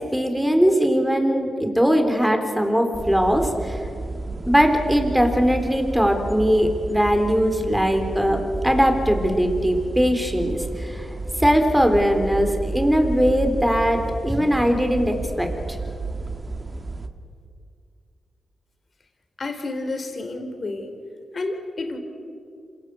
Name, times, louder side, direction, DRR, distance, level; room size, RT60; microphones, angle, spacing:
voice 1, 0.0-3.8 4.5-11.1 11.4-15.5, equal, 5° right, 5 dB, 3.8 m, -20 dB
sound 1, 2.9-17.1, right 2 dB, 30° right, 1.9 m, -32 dB
voice 2, 19.4-20.9 21.3-22.0, left 2 dB, 50° left, 6 dB, 4.0 m, -30 dB
27.0 x 17.5 x 8.5 m, 2.5 s
cardioid pair, 60°, 0 cm